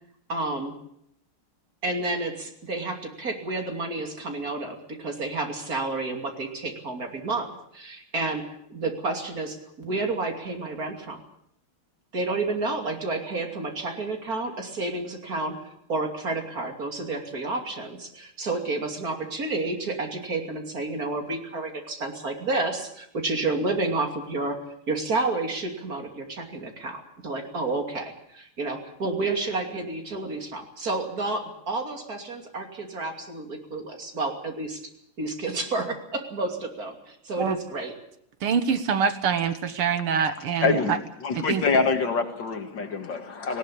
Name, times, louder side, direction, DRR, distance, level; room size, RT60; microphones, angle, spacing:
voice 1, 0.3-0.7 1.8-11.2 12.1-24.6 24.9-34.8 35.2-37.9 40.7-40.8, right 3 dB, 40° right, 4 dB, 3.2 m, -30 dB
voice 2, 38.4-41.0 41.4-41.6, right 7 dB, 80° right, 11 dB, 2.2 m, -25 dB
voice 3, 40.6-40.9 41.2-43.6, left 4 dB, 55° left, 6 dB, 2.5 m, -25 dB
19.0 x 18.0 x 8.6 m, 0.73 s
omnidirectional pair, 2.4 m